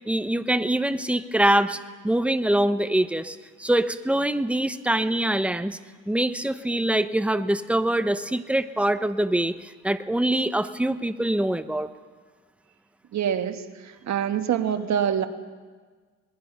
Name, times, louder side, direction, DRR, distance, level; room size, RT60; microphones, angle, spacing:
voice 1, 0.1-1.8 2.0-5.8 6.1-11.9, right 1 dB, 5° right, 11 dB, 0.9 m, -24 dB
voice 2, 13.1-13.6 14.1-15.3, right 9 dB, 65° right, 7 dB, 1.6 m, -24 dB
26.0 x 20.5 x 5.6 m, 1.5 s
cardioid pair, 90°, 30 cm